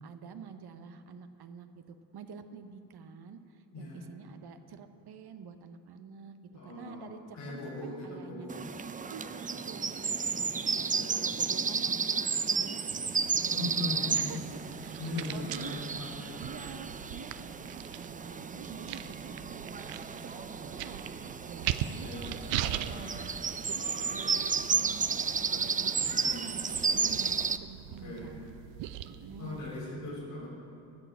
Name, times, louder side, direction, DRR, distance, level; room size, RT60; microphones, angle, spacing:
voice 1, 0.0-6.4 6.6-8.5 8.8-12.8 13.4-15.9 16.4-19.6 20.1-21.1 21.4-22.1 22.7-23.3 23.6-28.5 29.1-29.6, right 6 dB, 60° right, 9 dB, 0.9 m, -48 dB
voice 2, 6.5-8.6 10.7-11.2 13.5-14.4 15.0-16.4 21.9-22.3 22.6-22.9 26.0-26.5 27.8-28.3 29.4-30.5, left 2 dB, 90° left, -6 dB, 3.6 m, -40 dB
sound 1, 8.5-27.6, right 5 dB, 20° right, 0.4 m, -33 dB
sound 2, 12.9-29.8, right 12 dB, 80° right, 0.6 m, -41 dB
13.5 x 7.9 x 6.3 m, 2.6 s
hypercardioid pair, 45°, 45 cm